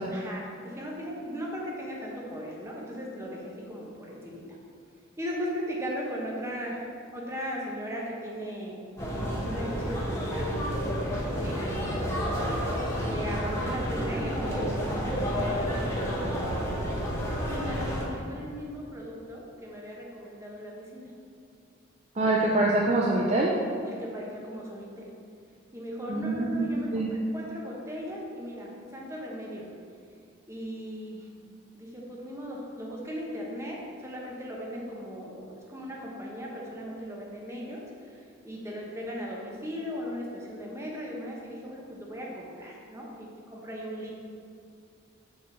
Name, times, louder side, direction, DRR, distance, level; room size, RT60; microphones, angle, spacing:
voice 1, 0.0-4.4 5.2-6.9 7.1-8.8 9.1-10.5 11.4-11.9 12.2-12.6 13.0-16.8 17.1-21.1 23.8-25.1 25.7-29.7 30.5-31.3 31.7-44.2, equal, 15° right, -3 dB, 1.1 m, -38 dB
sound 1, 9.0-18.1, equal, 15° left, 1.0 m, -30 dB
voice 2, 22.2-23.5 26.1-26.6 26.9-27.1, right 2 dB, 35° right, -3 dB, 0.5 m, -25 dB
7.2 x 4.1 x 6.1 m, 2.4 s
head